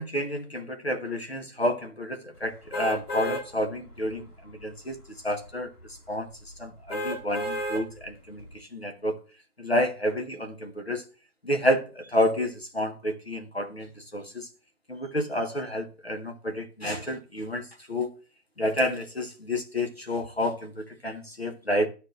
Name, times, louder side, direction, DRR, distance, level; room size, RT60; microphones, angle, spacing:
voice 1, 0.0-5.0 5.2-5.7 6.1-6.3 6.6-9.2 9.6-11.0 11.4-14.5 14.9-18.1 18.6-21.9, left 1 dB, 40° left, 0.9 m, -29 dB
sound 1, 2.7-3.4 4.0-4.1 6.9-7.8 8.4-8.5, equal, 75° left, 3.3 m, -31 dB
13.0 x 4.5 x 2.5 m
figure-of-eight pair, 180°, 48 cm